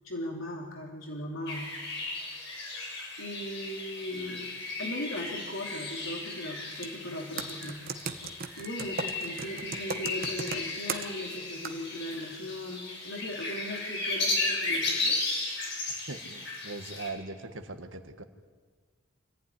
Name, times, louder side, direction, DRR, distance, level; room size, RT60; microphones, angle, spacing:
voice 1, 0.0-1.7 3.2-4.5 4.8-7.8 8.6-15.2, left 1 dB, 70° left, 0 dB, 2.9 m, -38 dB
sound 1, 1.5-17.1, left 3 dB, 55° left, 5.9 m, -35 dB
Computer keyboard, 6.7-6.9 7.4-11.4 11.6-11.8, right 5 dB, 45° right, 1.3 m, -36 dB
voice 2, 16.1-18.2, right 3 dB, 60° right, 7 dB, 1.7 m, -40 dB
27.0 x 15.0 x 10.0 m, 1.5 s
head